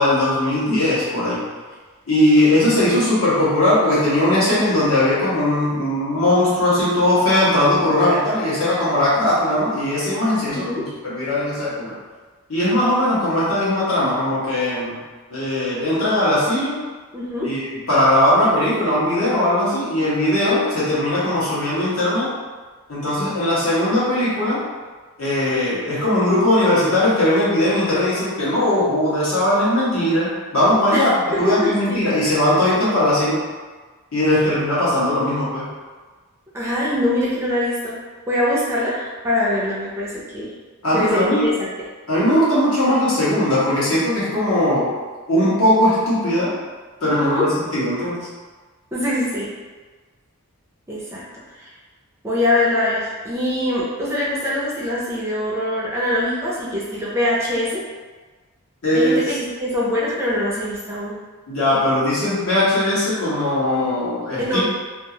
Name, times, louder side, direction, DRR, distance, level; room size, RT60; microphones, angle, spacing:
voice 1, 0.0-1.4 2.1-11.9 12.5-15.0 15.3-16.8 17.4-17.6 17.9-22.3 22.9-24.6 25.2-31.1 31.4-33.4 34.1-35.7 40.8-41.5 42.1-44.9 45.3-46.5 47.0-48.3 58.8-59.2 61.5-64.6, left 1 dB, 65° left, -9 dB, 1.2 m, -19 dB
voice 2, 4.5-4.8 10.5-10.8 17.1-17.5 30.9-31.0 31.6-32.3 34.3-34.5 36.5-37.9 38.3-40.5 40.9-41.7 47.1-47.5 48.9-49.5 50.9-51.2 51.5-51.7 52.2-57.8 58.9-61.2 64.4-64.6, left 1 dB, 10° right, -7 dB, 0.5 m, -23 dB
2.7 x 2.4 x 2.8 m, 1.4 s
head